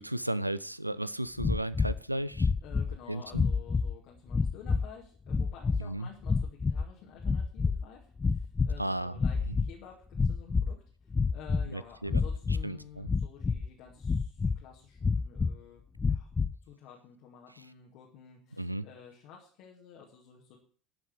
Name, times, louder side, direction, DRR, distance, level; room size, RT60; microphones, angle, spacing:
voice 1, 0.0-2.5 3.1-3.5 5.8-6.1 8.8-9.2 9.4-9.6 11.6-12.2 12.6-13.1 18.6-18.9, right 1 dB, 90° right, 18 dB, 0.4 m, -34 dB
sound 1, 1.4-2.0 2.3-3.0 3.3-3.9 4.3-4.9 5.3-5.8 6.2-6.9 7.2-7.9 8.2-8.8 9.1-9.7 10.1-10.8 11.1-11.7 12.1-12.6 13.1-13.7 14.0-14.6 15.0-15.5 16.0-16.6, left 4 dB, 20° left, 0.5 m, -28 dB
voice 2, 2.6-16.3 16.7-20.6, left 7 dB, 55° left, -2 dB, 2.2 m, -52 dB
12.5 x 6.0 x 7.8 m, 0.44 s
figure-of-eight pair, 70°, 0 cm